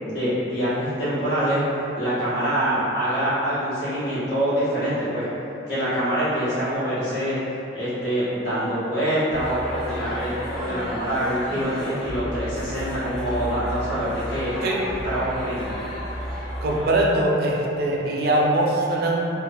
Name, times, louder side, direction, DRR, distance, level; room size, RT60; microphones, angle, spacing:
voice 1, 0.0-1.6 2.0-5.3 5.7-7.3 7.7-14.8 15.0-15.7, equal, 80° left, -12 dB, 1.1 m, -25 dB
sound 1, 9.3-17.0, equal, ahead, 0.5 m, -33 dB
voice 2, 16.6-19.3, right 1 dB, 55° right, -2 dB, 0.3 m, -22 dB
2.9 x 2.0 x 2.5 m, 2.9 s
head